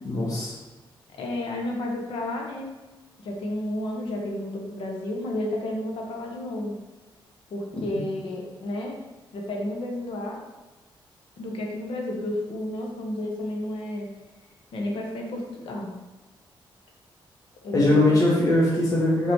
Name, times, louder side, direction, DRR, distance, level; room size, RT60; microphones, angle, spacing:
voice 1, 0.0-0.6 7.9-8.0 17.7-19.3, left 1 dB, 40° left, -5 dB, 1.9 m, -21 dB
voice 2, 1.2-2.7 3.2-6.8 7.5-9.0 9.3-10.4 11.4-14.1 14.7-15.9 17.6-18.2, left 1 dB, 85° left, 0 dB, 1.4 m, -31 dB
5.8 x 5.3 x 4.7 m, 1.1 s
cardioid pair, 120°, 9 cm